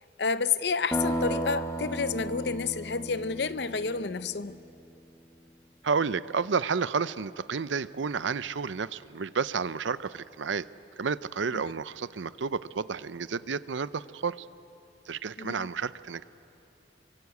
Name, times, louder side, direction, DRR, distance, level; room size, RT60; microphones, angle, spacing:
voice 1, 0.2-4.6 11.5-11.6 15.4-15.7, left 5 dB, 65° left, 0.7 m, -30 dB
sound 1, 0.9-4.7, equal, 15° left, 1.2 m, -34 dB
voice 2, 5.8-10.7 11.0-14.4 15.1-16.2, right 5 dB, 90° right, 0.6 m, -31 dB
27.5 x 24.0 x 8.4 m
head